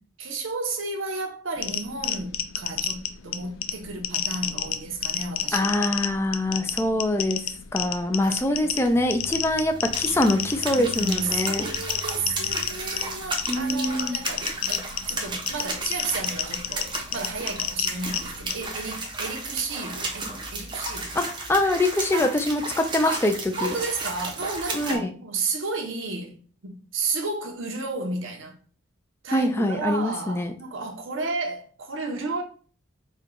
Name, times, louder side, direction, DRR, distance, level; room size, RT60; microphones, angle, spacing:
voice 1, 0.2-5.7 8.2-8.6 10.7-21.2 22.1-22.3 23.0-23.3 23.6-28.6 29.2-32.4, right 3 dB, 75° right, 0.9 m, -32 dB
sound 1, 1.6-18.6, left 9 dB, 85° left, 0.4 m, -31 dB
voice 2, 5.5-7.4 7.7-11.6 13.5-14.2 21.2-21.3 21.5-23.3 23.6-23.7 24.7-25.1 29.3-30.5, left 1 dB, 10° left, 0.4 m, -24 dB
sound 2, 8.8-25.0, right 2 dB, 25° right, 0.7 m, -34 dB
4.4 x 2.3 x 3.7 m
head